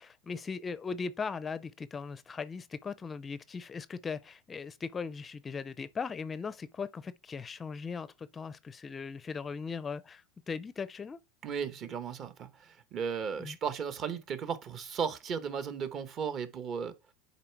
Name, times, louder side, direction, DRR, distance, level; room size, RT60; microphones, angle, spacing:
voice 1, 0.0-11.2 13.4-13.6, left 5 dB, 20° left, 0.5 m, -39 dB
voice 2, 11.4-16.9, right 6 dB, 40° right, 1.2 m, -35 dB
10.0 x 4.0 x 4.6 m
supercardioid pair, 125°, 0 cm